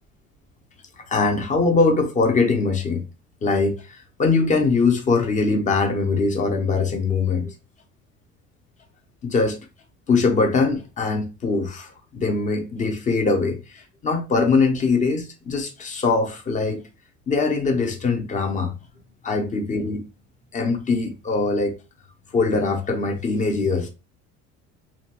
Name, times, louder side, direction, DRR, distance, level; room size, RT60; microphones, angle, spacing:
voice 1, 1.0-3.0 3.4-3.8 4.2-7.5 9.2-9.6 10.1-16.8 17.3-18.8 19.2-20.0 20.5-21.8 22.3-23.9, left 4 dB, 25° left, 0.6 m, -22 dB
2.7 x 2.2 x 2.9 m
cardioid pair, 145°, 29 cm